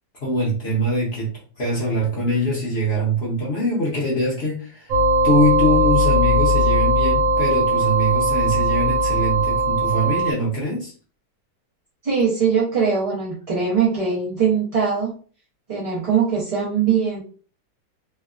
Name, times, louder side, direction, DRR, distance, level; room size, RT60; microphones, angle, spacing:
voice 1, 0.2-1.3 1.6-4.9 5.2-10.9, equal, 45° left, -5 dB, 0.8 m, -23 dB
sound 1, 4.9-10.3, right 1 dB, 90° right, 1.3 m, -19 dB
voice 2, 12.0-15.1 15.7-17.2, right 6 dB, 45° right, -7 dB, 0.4 m, -21 dB
3.3 x 2.2 x 2.4 m, 0.40 s
omnidirectional pair, 2.0 m